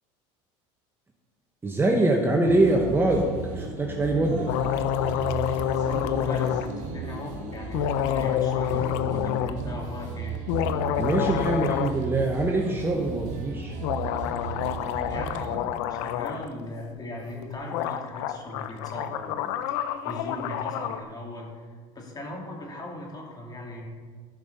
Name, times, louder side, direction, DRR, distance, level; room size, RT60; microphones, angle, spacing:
voice 1, 1.6-4.5 11.0-13.8, right 2 dB, 15° right, 1 dB, 1.1 m, -24 dB
sound 1, 2.5-15.6, right 5 dB, 55° right, 1.8 m, -36 dB
sound 2, 4.5-6.7 7.7-9.5 10.3-12.0 12.3-12.4 13.8-16.5 17.4-17.5 17.7-21.0, left 10 dB, 80° left, 0.6 m, -28 dB
voice 2, 5.8-10.4 15.1-19.5 20.0-23.9, left 2 dB, 25° left, -1 dB, 2.9 m, -38 dB
14.5 x 5.4 x 5.4 m, 1.5 s
supercardioid pair, 115°, 15 cm